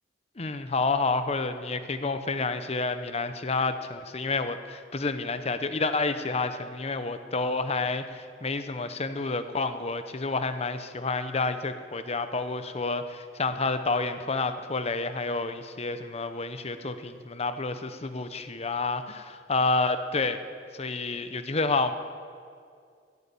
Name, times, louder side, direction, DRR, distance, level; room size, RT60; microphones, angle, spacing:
voice 1, 0.4-20.4 20.7-21.9, left 3 dB, 35° left, 10 dB, 0.8 m, -29 dB
15.0 x 11.5 x 8.4 m, 2.2 s
head